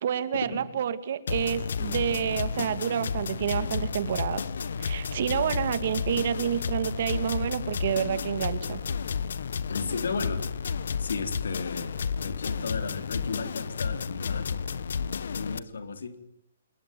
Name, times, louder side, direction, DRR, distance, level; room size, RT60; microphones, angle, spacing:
voice 1, 0.0-4.4 4.8-8.8, right 9 dB, 45° right, 2.3 m, -29 dB
sound 1, 1.3-15.6, left 6 dB, 70° left, 1.4 m, -32 dB
sound 2, 5.8-5.9 6.1-8.2 8.5-8.6 8.8-12.5 12.8-13.1, right 13 dB, 15° right, 3.4 m, -57 dB
voice 2, 9.7-10.5 11.0-16.3, left 4 dB, 90° left, 4.2 m, -35 dB
27.0 x 22.0 x 9.5 m
hypercardioid pair, 170°, 0 cm